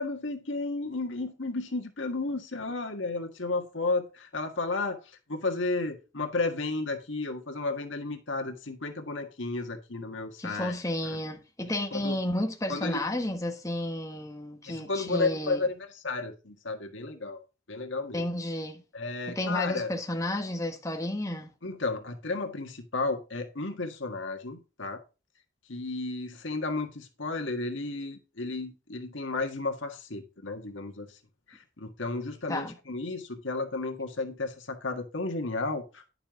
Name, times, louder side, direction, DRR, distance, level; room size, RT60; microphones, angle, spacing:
voice 1, 0.0-10.7 11.1-11.2 11.9-12.2 12.7-13.0 14.6-17.4 17.7-18.3 18.9-19.9 21.6-25.0 25.7-31.2 31.5-36.0, left 3 dB, 80° left, 1.7 m, -33 dB
voice 2, 10.4-15.6 18.1-18.8 19.3-21.5 32.5-32.7, left 1 dB, 15° left, 1.3 m, -32 dB
10.5 x 7.0 x 3.8 m
head